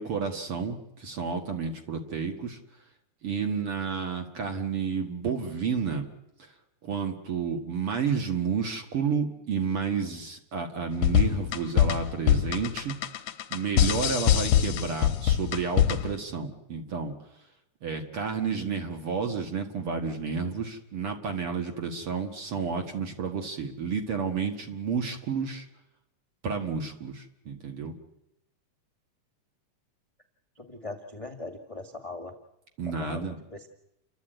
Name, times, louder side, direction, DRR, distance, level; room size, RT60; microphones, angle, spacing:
voice 1, 0.0-2.6 3.2-6.1 6.8-13.0 13.5-17.1 17.8-25.7 26.4-28.0 32.8-33.4, right 5 dB, 50° right, 4 dB, 2.5 m, -31 dB
sound 1, 10.9-16.2, left 10 dB, 65° left, 1.8 m, -24 dB
voice 2, 30.6-32.3 32.8-33.7, left 2 dB, 15° left, 3 dB, 1.1 m, -40 dB
30.0 x 12.5 x 9.2 m, 0.87 s
omnidirectional pair, 3.7 m